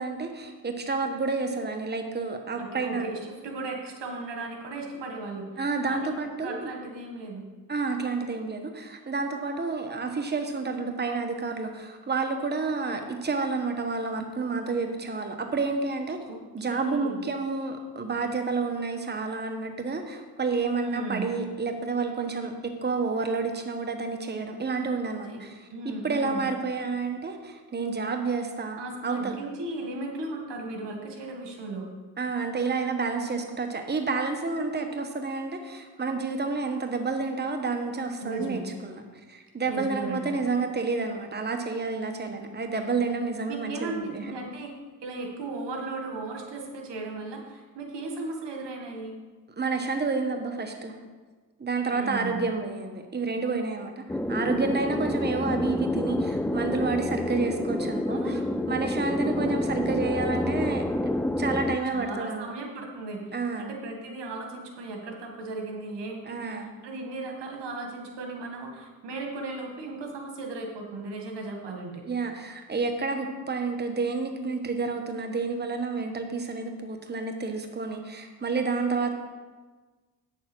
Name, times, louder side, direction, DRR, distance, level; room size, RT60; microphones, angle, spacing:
voice 1, 0.0-3.1 5.6-6.7 7.7-16.2 16.5-29.4 32.2-39.0 39.3-44.3 49.6-50.9 51.6-58.4 58.7-60.8 61.4-62.5 63.3-63.7 66.3-66.7 72.1-79.1, right 4 dB, 25° right, 5 dB, 1.1 m, -30 dB
voice 2, 2.6-5.5 5.9-7.4 16.3-16.4 16.6-17.2 20.8-21.4 25.3-25.4 25.7-26.5 28.8-31.9 38.2-38.6 39.7-40.3 42.3-42.4 43.5-44.7 45.0-49.2 51.9-52.5 58.1-58.5 61.9-72.0, right 2 dB, 85° right, 2 dB, 1.8 m, -36 dB
sound 1, 54.1-61.8, left 1 dB, 5° left, 0.3 m, -28 dB
8.4 x 7.2 x 6.2 m, 1.3 s
cardioid pair, 80°, 41 cm